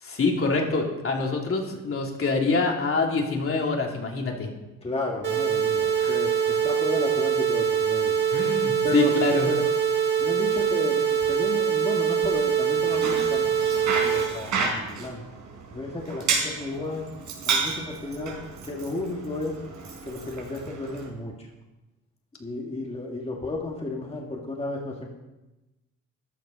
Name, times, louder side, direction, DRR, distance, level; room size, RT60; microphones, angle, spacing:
voice 1, 0.0-4.5 6.0-6.2 8.3-9.5, left 3 dB, 45° left, 0 dB, 3.0 m, -25 dB
voice 2, 4.8-8.1 8.8-9.1 9.5-9.7 10.2-15.2 15.7-17.1 17.4-18.4 18.6-19.6 20.0-21.5 22.4-25.1, left 2 dB, 20° left, -1 dB, 2.2 m, -33 dB
sound 1, 5.2-14.2, right 8 dB, 40° right, 3.4 m, -24 dB
Bicycle, 12.7-21.1, right 4 dB, 75° right, 4.5 m, -32 dB
14.0 x 10.5 x 5.4 m, 1.0 s
cardioid pair, 90°, 30 cm